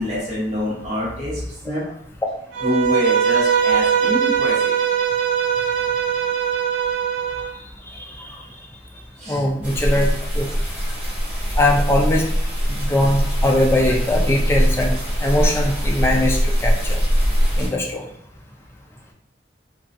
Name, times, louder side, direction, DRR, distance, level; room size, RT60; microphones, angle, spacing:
voice 1, 0.0-1.8 2.6-4.8 9.2-9.4, left 1 dB, 40° right, -6 dB, 1.1 m, -25 dB
Bowed string instrument, 2.5-7.5, right 8 dB, 85° right, 0.3 m, -20 dB
voice 2, 7.9-8.4 9.3-10.1 10.3-10.5 11.6-12.3 12.7-17.0 17.6-18.0, left 1 dB, 15° left, -1 dB, 0.3 m, -21 dB
sound 1, 9.6-17.7, equal, 10° right, 1.1 m, -21 dB
2.3 x 2.2 x 2.6 m, 0.74 s
head